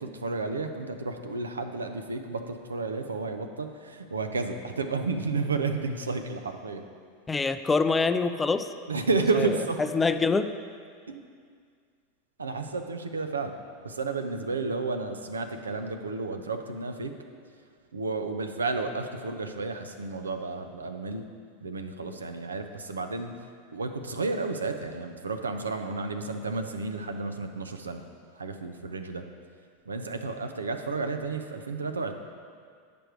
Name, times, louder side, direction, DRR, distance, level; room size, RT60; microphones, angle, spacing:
voice 1, 0.0-6.8 8.9-9.8 11.1-11.2 12.4-13.5 13.8-17.1 17.9-21.2 21.6-23.3 23.7-28.0 28.4-29.2 29.9-32.1, right 3 dB, 90° right, 6 dB, 0.5 m, -31 dB
voice 2, 7.3-8.7 9.4-9.5 9.9-10.5, left 4 dB, 15° left, 10 dB, 0.4 m, -25 dB
8.9 x 5.1 x 4.6 m, 2.1 s
hypercardioid pair, 90°, 0 cm